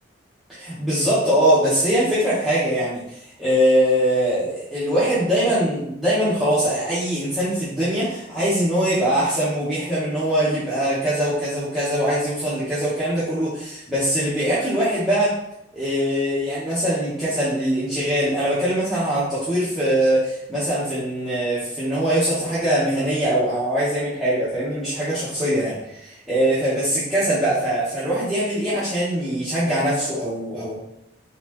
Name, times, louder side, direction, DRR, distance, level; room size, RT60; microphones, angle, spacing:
voice 1, 0.5-15.3 15.7-30.8, right 1 dB, ahead, -13 dB, 1.1 m, -22 dB
4.2 x 3.6 x 3.0 m, 0.81 s
head